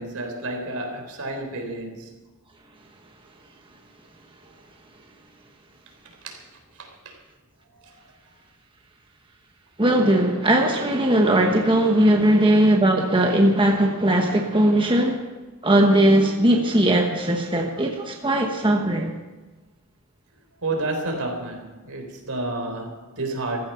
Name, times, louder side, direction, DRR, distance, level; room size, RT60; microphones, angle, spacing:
voice 1, 0.0-2.1 6.2-6.4 6.8-7.2 20.6-23.7, right 2 dB, 75° right, 3 dB, 3.6 m, -30 dB
voice 2, 9.8-15.2 15.6-19.1, right 1 dB, 20° right, 2 dB, 1.1 m, -19 dB
15.0 x 14.5 x 5.7 m, 1.2 s
head